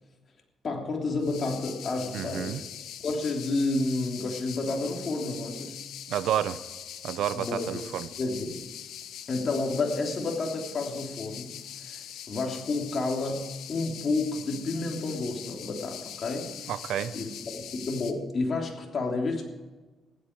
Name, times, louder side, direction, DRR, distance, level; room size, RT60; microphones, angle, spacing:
voice 1, 0.6-2.6 3.0-5.8 7.3-7.8 8.2-8.6 9.3-16.5 17.1-19.4, left 3 dB, 45° left, 3.2 m, -30 dB
sound 1, 1.2-18.1, left 10 dB, 80° left, 1.1 m, -42 dB
voice 2, 2.1-2.6 6.1-6.6 7.0-8.1 16.7-17.1, right 10 dB, 80° right, 0.7 m, -30 dB
15.5 x 11.5 x 4.7 m
cardioid pair, 90°, 0 cm